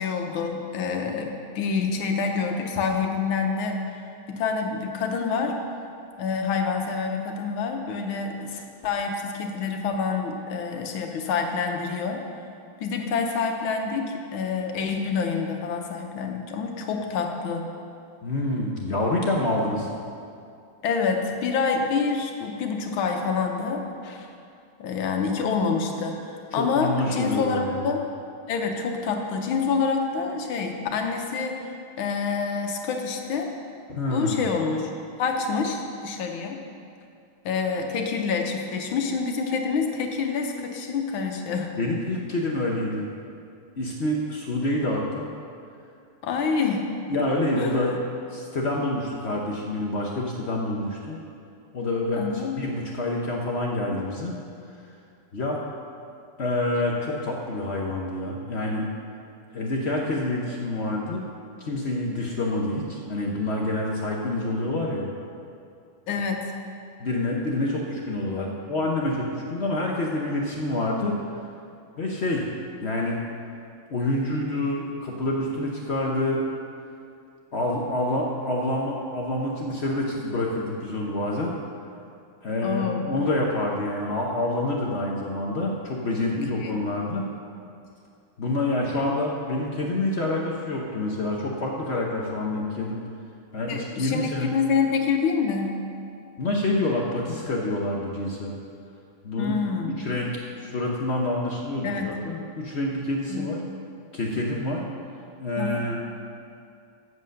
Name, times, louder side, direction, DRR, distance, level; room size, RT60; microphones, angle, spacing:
voice 1, 0.0-5.6 6.2-12.2 12.8-17.7 20.8-24.3 24.8-26.2 26.5-28.0 28.5-33.5 34.1-34.9 35.2-36.6 37.5-41.7 46.2-46.9 47.6-47.7 52.1-52.6 66.1-66.5 82.6-83.1 86.3-86.8 93.7-95.8 99.4-99.9 101.8-102.2 103.3-103.5 105.6-105.8, left 5 dB, 85° left, 3 dB, 1.7 m, -27 dB
voice 2, 18.2-19.9 26.5-27.9 33.9-34.4 41.8-43.1 43.8-45.3 47.1-48.0 48.3-51.2 51.7-54.3 54.7-54.9 55.3-55.6 56.4-58.9 59.5-61.2 61.6-65.1 67.0-71.1 72.0-72.5 72.8-73.2 73.9-76.5 77.5-81.5 82.4-87.3 88.4-93.0 93.5-94.6 96.4-98.5 99.2-99.5 99.9-103.6 104.1-104.8 105.4-106.0, left 1 dB, 60° left, -2 dB, 0.7 m, -27 dB
7.8 x 7.7 x 6.4 m, 2.5 s
omnidirectional pair, 2.2 m